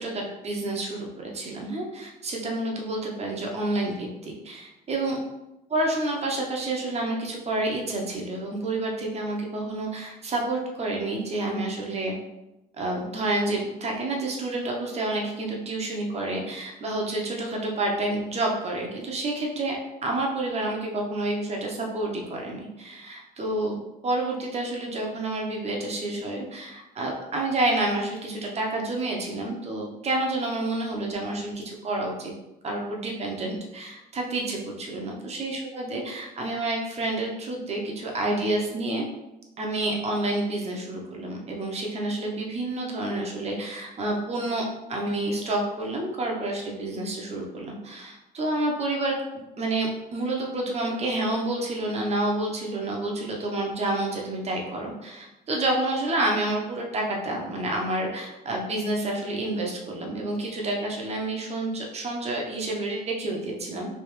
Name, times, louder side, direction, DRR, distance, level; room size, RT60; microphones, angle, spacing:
voice 1, 0.0-5.2 5.7-12.1 12.8-32.3 32.6-39.0 39.6-44.6 44.9-63.9, right 2 dB, 40° right, -1 dB, 0.8 m, -29 dB
3.3 x 3.0 x 3.1 m, 0.95 s
cardioid pair, 110°, 17 cm